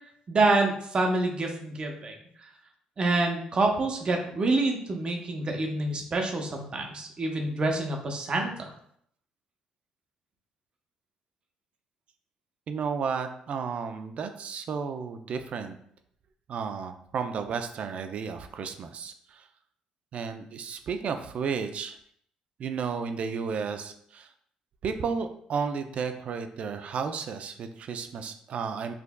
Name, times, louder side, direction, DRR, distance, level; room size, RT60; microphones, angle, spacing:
voice 1, 0.3-2.1 3.0-8.5, right 2 dB, 40° right, 2 dB, 0.8 m, -27 dB
voice 2, 12.7-15.8 16.5-19.5 20.1-22.0 22.6-24.3 24.8-28.9, right 6 dB, 55° right, 7 dB, 0.4 m, -33 dB
4.7 x 2.5 x 2.2 m, 0.67 s
supercardioid pair, 60°, 3 cm